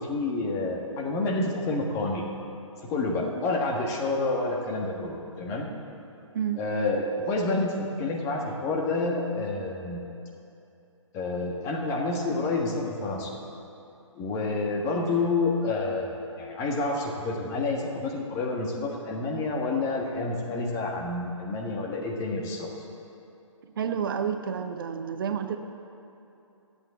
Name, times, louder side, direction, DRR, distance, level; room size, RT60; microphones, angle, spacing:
voice 1, 0.0-2.2 2.9-5.7 6.6-10.0 11.1-13.3 14.1-22.7, left 3 dB, 20° left, 0 dB, 1.5 m, -29 dB
voice 2, 23.8-25.6, right 7 dB, 40° right, 7 dB, 0.8 m, -29 dB
13.5 x 8.4 x 8.2 m, 2.8 s
figure-of-eight pair, 135°, 17 cm